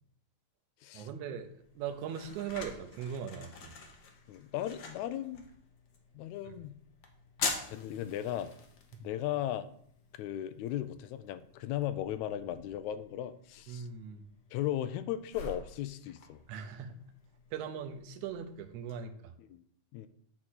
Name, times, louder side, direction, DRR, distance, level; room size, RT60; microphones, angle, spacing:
voice 1, 0.9-3.7 6.5-6.6 13.7-14.2 16.5-17.0 17.5-19.3, right 7 dB, 80° right, 6 dB, 2.1 m, -40 dB
sound 1, 1.4-19.0, left 4 dB, 65° left, 1.2 m, -46 dB
voice 2, 4.3-5.5 6.2-6.7 7.6-8.5 9.0-9.7 10.2-13.9 14.5-16.4 19.5-19.6 19.9-20.1, left 12 dB, 80° left, 12 dB, 1.9 m, -36 dB
8.7 x 3.8 x 6.2 m, 0.65 s
omnidirectional pair, 3.4 m